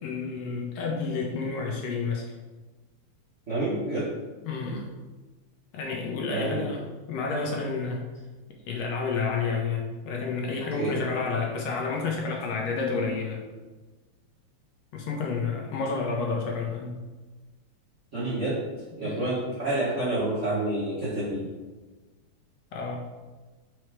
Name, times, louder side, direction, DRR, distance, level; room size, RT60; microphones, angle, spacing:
voice 1, 0.0-2.2 4.4-4.9 5.7-8.0 8.7-13.4 14.9-17.0 19.0-19.2 22.7-23.0, left 4 dB, 70° left, 0 dB, 1.8 m, -30 dB
voice 2, 3.5-4.1 6.3-6.6 10.7-10.9 18.1-18.6 19.0-21.5, right 2 dB, 60° right, -8 dB, 0.7 m, -28 dB
4.8 x 4.5 x 4.7 m, 1.3 s
omnidirectional pair, 3.4 m